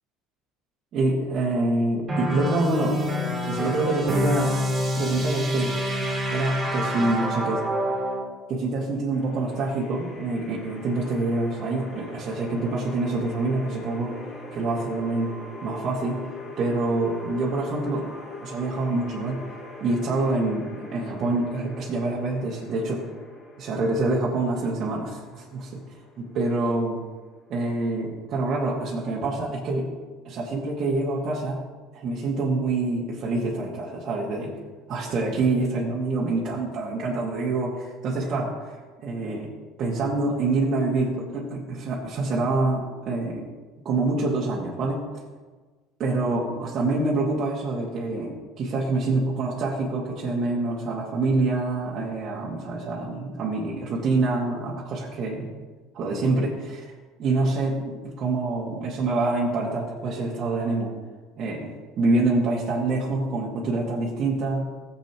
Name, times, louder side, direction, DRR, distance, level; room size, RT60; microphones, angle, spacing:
voice 1, 0.9-3.1 3.4-4.6 5.0-5.7 6.3-7.7 8.5-14.2 14.5-15.3 15.6-16.2 16.6-18.1 18.4-19.4 19.8-23.0 23.6-25.8 26.3-27.0 27.5-29.9 30.2-31.6 31.9-34.5 34.9-39.5 39.8-43.5 43.8-45.2 46.0-55.5 55.9-56.9 57.2-60.9 61.4-64.7, right 2 dB, 45° right, -5 dB, 1.9 m, -26 dB
sound 1, 2.1-8.3, equal, 25° right, 3.5 m, -27 dB
sound 2, 9.1-28.1, left 2 dB, 30° left, 1.7 m, -42 dB
15.5 x 7.6 x 3.0 m, 1.3 s
supercardioid pair, 105°, 0 cm